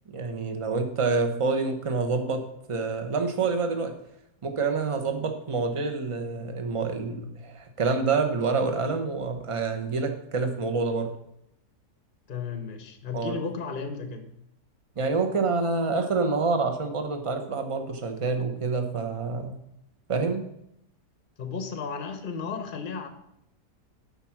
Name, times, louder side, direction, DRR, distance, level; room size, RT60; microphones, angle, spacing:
voice 1, 0.1-2.4 2.7-3.9 4.4-11.1 13.1-13.4 15.0-19.6 20.1-20.5, right 4 dB, 25° right, 5 dB, 0.8 m, -27 dB
voice 2, 12.3-14.3 21.4-23.1, left 5 dB, 35° left, 6 dB, 0.9 m, -34 dB
11.0 x 4.4 x 5.9 m, 0.79 s
omnidirectional pair, 1.8 m